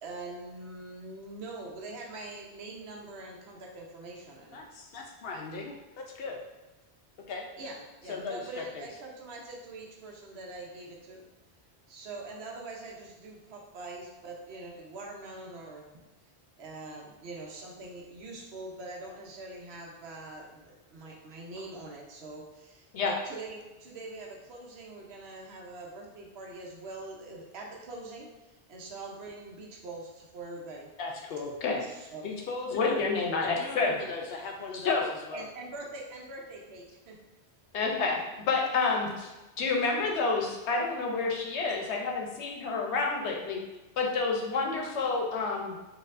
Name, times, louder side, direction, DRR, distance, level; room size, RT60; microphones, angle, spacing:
voice 1, 0.0-4.6 7.6-11.2 11.9-15.9 16.6-28.3 28.7-30.9 31.8-32.3 35.3-37.2, right 2 dB, 70° right, -1 dB, 0.9 m, -43 dB
voice 2, 4.5-6.4 7.3-7.5 8.1-8.9 31.0-31.6 32.2-33.1 33.4-35.4, left 4 dB, 65° left, 2 dB, 0.7 m, -38 dB
voice 3, 32.7-33.9 34.8-35.1 37.7-38.2 38.5-39.3 39.6-43.6 44.0-45.7, left 4 dB, 90° left, 0 dB, 1.0 m, -28 dB
4.3 x 2.7 x 2.5 m, 1.1 s
omnidirectional pair, 1.1 m